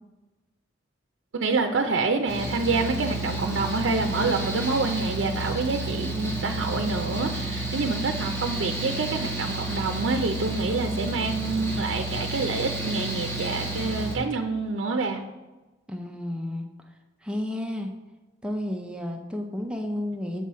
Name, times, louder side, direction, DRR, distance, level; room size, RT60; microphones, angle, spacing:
voice 1, 1.3-15.2, right 3 dB, 80° right, 4 dB, 0.6 m, -27 dB
Mechanical fan, 2.3-14.2, right 2 dB, 15° left, 1.7 m, -31 dB
voice 2, 15.9-16.7 17.2-17.9 18.4-20.4, left 1 dB, 5° right, 2 dB, 0.6 m, -31 dB
7.5 x 5.5 x 4.2 m, 1.1 s
head